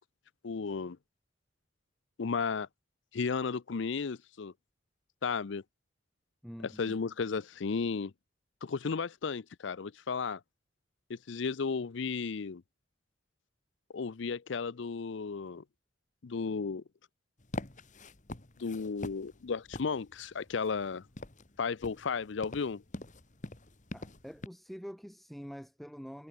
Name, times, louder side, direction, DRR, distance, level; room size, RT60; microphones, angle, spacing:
voice 1, 0.4-1.0 2.2-2.7 3.1-4.5 5.2-5.6 6.6-8.1 8.6-10.4 11.1-12.6 13.9-15.6 16.2-16.8 18.6-21.1 21.6-22.8, left 5 dB, 65° left, 0.5 m, -34 dB
voice 2, 6.4-7.0 23.9-26.3, equal, ahead, 0.9 m, -46 dB
sound 1, 17.4-24.5, left 2 dB, 40° left, 1.6 m, -45 dB
head